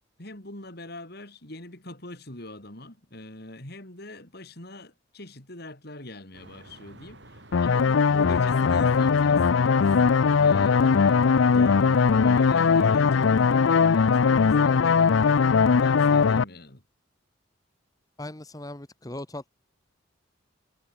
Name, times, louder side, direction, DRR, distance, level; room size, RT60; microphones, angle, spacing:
voice 1, 0.2-9.9 10.4-11.2 11.5-14.7 15.8-16.8, left 1 dB, 50° left, 4.4 m, -43 dB
sound 1, 6.3-13.0, right 1 dB, 60° right, 7.5 m, -50 dB
sound 2, 7.5-16.4, left 5 dB, 75° left, 0.5 m, -20 dB
voice 2, 14.6-15.4 18.2-19.5, left 1 dB, 20° left, 1.3 m, -40 dB
head